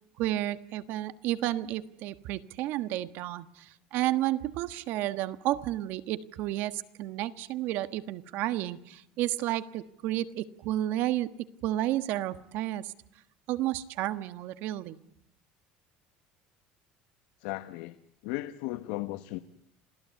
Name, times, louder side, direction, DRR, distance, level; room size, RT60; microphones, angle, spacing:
voice 1, 0.2-11.3 11.6-12.9 13.5-15.0, right 14 dB, 65° right, 13 dB, 1.4 m, -31 dB
voice 2, 17.4-18.0 18.2-19.4, left 18 dB, 85° left, 11 dB, 1.1 m, -35 dB
27.5 x 17.0 x 9.4 m, 0.77 s
cardioid pair, 140°, 4 cm